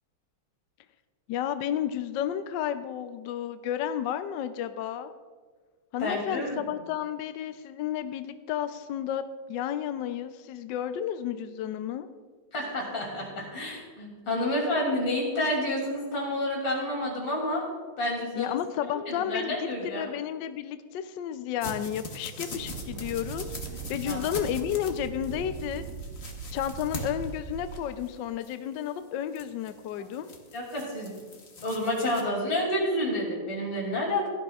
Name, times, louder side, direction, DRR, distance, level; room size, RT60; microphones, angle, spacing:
voice 1, 1.3-5.1 5.9-12.1 18.4-23.5 23.9-25.8 26.5-30.3, left 10 dB, 75° left, 10 dB, 1.1 m, -32 dB
voice 2, 6.0-6.8 12.5-17.6 18.0-18.6 18.9-20.1 24.0-24.2 30.0-30.1 30.5-31.2 31.6-34.3, left 1 dB, 60° left, -2 dB, 3.6 m, -29 dB
sound 1, 21.6-32.2, left 2 dB, 40° left, 1.0 m, -42 dB
sound 2, 22.5-27.9, right 5 dB, 75° right, 1.6 m, -40 dB
16.5 x 12.0 x 2.4 m, 1.5 s
omnidirectional pair, 2.4 m